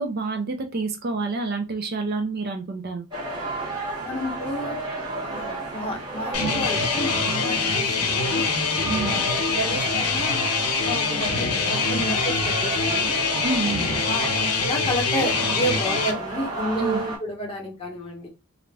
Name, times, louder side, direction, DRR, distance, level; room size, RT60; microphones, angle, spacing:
voice 1, 0.0-3.1 8.9-9.2 13.4-13.9 16.8-17.0, right 3 dB, 45° right, 0.4 m, -28 dB
sound 1, 3.1-17.2, right 2 dB, 20° right, 0.9 m, -32 dB
voice 2, 4.0-4.8 5.2-8.5 9.0-10.5 10.8-13.2 14.0-18.3, equal, 25° left, 0.8 m, -31 dB
sound 2, 6.3-16.1, left 4 dB, 85° left, 0.6 m, -24 dB
2.4 x 2.1 x 3.2 m
head